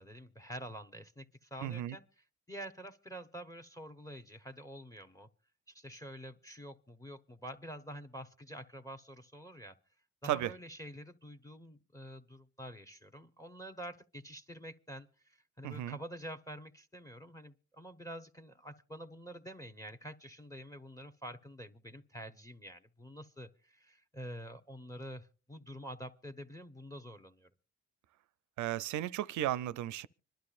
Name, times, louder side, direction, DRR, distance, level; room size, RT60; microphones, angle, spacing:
voice 1, 0.0-5.3 5.7-9.8 10.2-27.5, equal, 10° left, 0.8 m, -47 dB
voice 2, 1.6-2.0 10.3-10.5 15.6-16.0 28.6-30.1, right 13 dB, 75° right, 0.5 m, -34 dB
26.0 x 11.5 x 2.4 m
cardioid pair, 90°, 30 cm